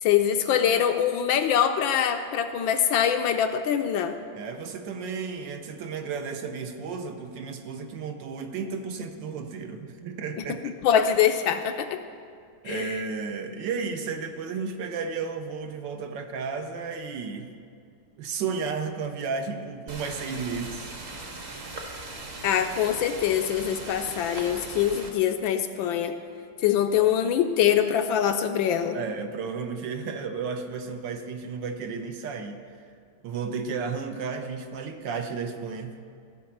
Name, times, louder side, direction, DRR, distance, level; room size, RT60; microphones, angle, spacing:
voice 1, 0.0-4.2 10.5-12.0 12.7-13.0 22.4-26.2 26.6-29.0, left 9 dB, 75° left, 7 dB, 1.2 m, -24 dB
voice 2, 4.3-10.7 12.6-17.5 18.2-20.9 28.9-32.6 33.2-36.0, right 5 dB, 65° right, 6 dB, 1.3 m, -33 dB
sound 1, 19.9-25.1, right 2 dB, 40° right, 1.1 m, -39 dB
15.0 x 5.0 x 7.0 m, 2.3 s
omnidirectional pair, 2.3 m